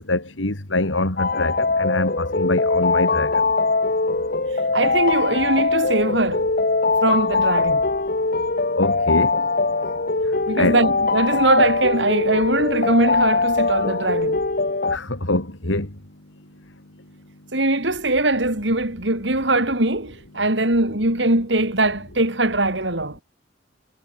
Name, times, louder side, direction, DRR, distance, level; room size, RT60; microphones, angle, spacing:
voice 1, 0.0-3.4 8.8-9.3 10.6-10.8 14.9-15.9, left 2 dB, 90° left, 3.3 m, -24 dB
sound 1, 1.2-15.0, left 3 dB, 50° left, 1.9 m, -21 dB
voice 2, 4.7-6.5 7.0-7.9 10.5-14.4 17.5-23.2, right 2 dB, 65° right, 5.9 m, -21 dB
head